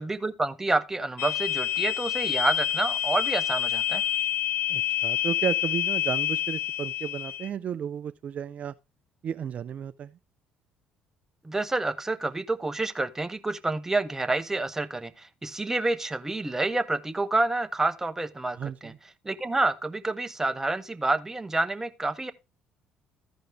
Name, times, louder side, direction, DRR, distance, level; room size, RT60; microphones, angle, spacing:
voice 1, 0.0-4.0 11.4-18.9 19.2-22.3, right 2 dB, 15° right, 0.8 m, -28 dB
sound 1, 1.2-7.5, left 11 dB, 75° left, 0.5 m, -28 dB
voice 2, 4.7-8.7 9.2-10.2 18.6-19.0, right 8 dB, 50° right, 0.4 m, -33 dB
14.0 x 5.1 x 3.3 m
supercardioid pair, 70°, 3 cm